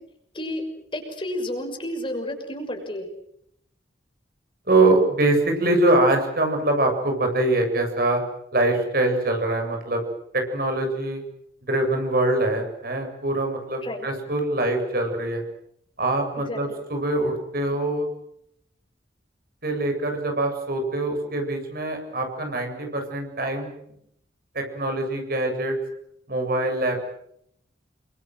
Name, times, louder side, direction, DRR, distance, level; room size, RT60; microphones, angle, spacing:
voice 1, 0.9-3.1 13.8-14.1 16.4-16.8, left 1 dB, 30° left, 5 dB, 6.3 m, -31 dB
voice 2, 4.7-8.2 8.5-10.0 10.3-11.2 11.7-15.4 16.0-18.1 19.6-23.7 24.5-25.8 26.3-27.0, right 2 dB, 55° right, 4 dB, 7.5 m, -23 dB
29.0 x 24.5 x 7.8 m, 0.74 s
head